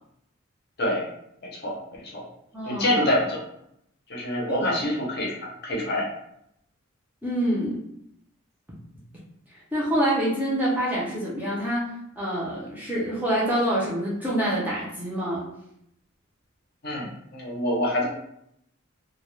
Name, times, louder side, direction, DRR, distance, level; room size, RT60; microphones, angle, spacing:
voice 1, 1.4-2.3 2.7-3.4 4.1-6.1 16.8-18.1, left 1 dB, 45° left, -3 dB, 0.6 m, -26 dB
voice 2, 2.5-2.9 4.5-4.7 7.2-7.8 9.7-15.5, right 1 dB, 5° right, -7 dB, 0.5 m, -26 dB
2.2 x 2.1 x 3.1 m, 0.74 s
head